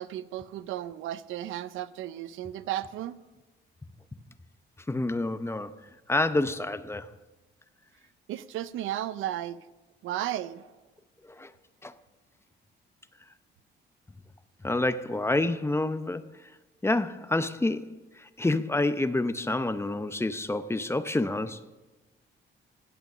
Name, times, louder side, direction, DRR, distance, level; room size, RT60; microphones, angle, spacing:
voice 1, 0.0-3.2 8.3-9.6 10.0-10.7, right 12 dB, 85° right, 0.6 m, -34 dB
voice 2, 4.9-5.7 6.1-7.1 11.4-11.5 11.8-11.9 14.6-16.2 16.8-18.0 18.4-21.6, left 2 dB, 15° left, 0.7 m, -28 dB
17.0 x 8.1 x 6.1 m
cardioid pair, 90°, 20 cm